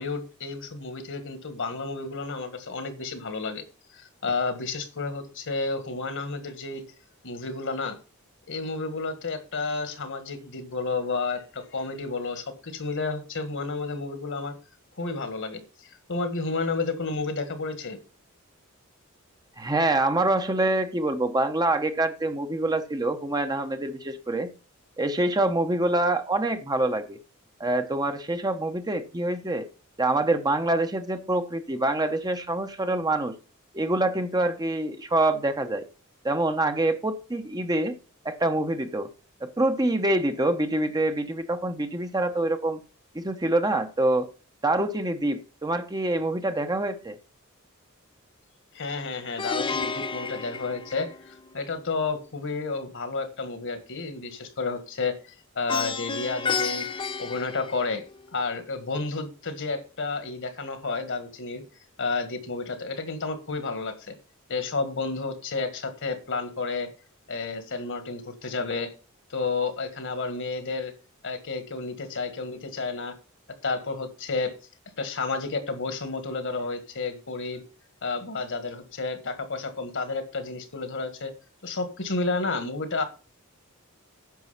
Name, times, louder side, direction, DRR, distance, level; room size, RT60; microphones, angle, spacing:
voice 1, 0.0-3.6 3.9-6.8 7.2-8.0 8.5-14.5 15.0-18.0 48.7-56.9 57.2-58.0 58.3-61.6 62.0-64.2 64.5-66.9 67.3-68.9 69.3-70.9 71.2-73.1 73.6-74.5 75.0-77.6 78.0-81.3 81.6-83.0, left 3 dB, 60° left, 9 dB, 1.7 m, -31 dB
voice 2, 19.6-24.5 25.0-27.2 27.6-29.7 30.0-33.3 33.7-35.8 36.2-38.0 38.2-39.1 39.4-42.8 43.1-44.3 44.6-47.1, right 2 dB, 20° right, 8 dB, 0.8 m, -25 dB
Plucked string instrument, 49.4-51.5 55.7-58.3, left 5 dB, 25° left, 0.5 m, -31 dB
9.4 x 6.1 x 5.6 m, 0.34 s
head